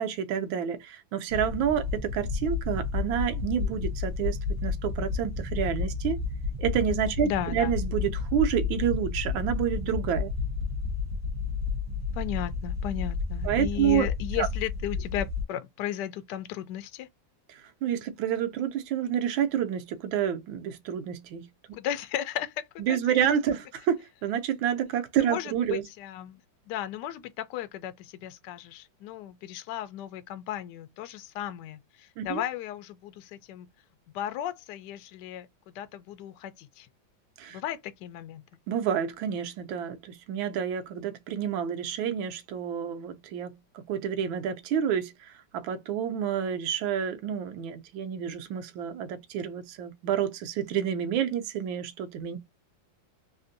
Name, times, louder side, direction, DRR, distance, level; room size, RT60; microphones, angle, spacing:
voice 1, 0.0-6.2 6.6-10.3 13.4-14.1 14.4-14.5 17.5-21.5 22.8-25.9 32.2-32.4 37.4-37.6 38.7-43.6 43.9-52.4, right 9 dB, 90° right, 1.4 m, -29 dB
sound 1, 1.3-15.4, left 4 dB, 55° right, 1.0 m, -31 dB
voice 2, 7.2-7.7 12.1-17.1 21.7-23.3 25.2-26.4 26.7-33.7 34.1-36.9 37.5-38.4, left 11 dB, 75° left, 1.1 m, -35 dB
3.5 x 2.5 x 2.6 m
omnidirectional pair, 2.1 m